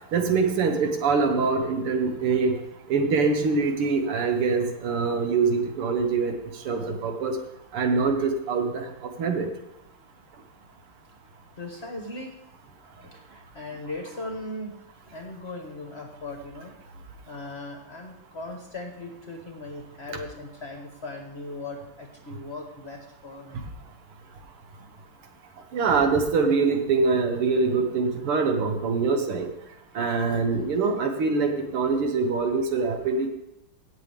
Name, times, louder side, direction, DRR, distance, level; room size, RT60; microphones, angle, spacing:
voice 1, 0.1-2.5 2.9-6.3 6.7-7.4 7.7-9.5 25.7-29.5 30.0-33.3, right 4 dB, 80° right, 5 dB, 2.2 m, -24 dB
voice 2, 11.6-12.3 13.0-16.7 17.3-23.6, left 2 dB, 35° left, 2 dB, 1.2 m, -38 dB
17.0 x 7.5 x 3.5 m, 0.92 s
omnidirectional pair, 2.4 m